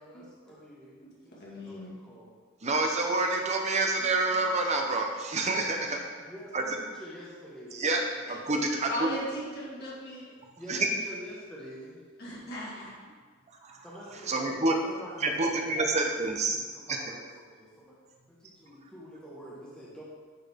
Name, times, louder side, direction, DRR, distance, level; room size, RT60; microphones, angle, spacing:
voice 1, 0.0-2.3 6.2-8.6 10.6-12.0 13.8-15.9 16.2-18.0 18.3-20.0, equal, 5° left, -7 dB, 1.4 m, -47 dB
voice 2, 1.4-1.9 4.0-4.1 8.9-10.3 12.2-12.9, equal, 50° left, -6 dB, 2.1 m, -37 dB
voice 3, 2.6-6.0 6.5-6.6 7.7-8.0 8.3-9.1 10.7-10.9 13.6-13.8 14.3-14.7 15.2-16.6 16.9-17.0, right 3 dB, 35° right, 2 dB, 0.7 m, -27 dB
10.0 x 4.0 x 3.6 m, 1.5 s
head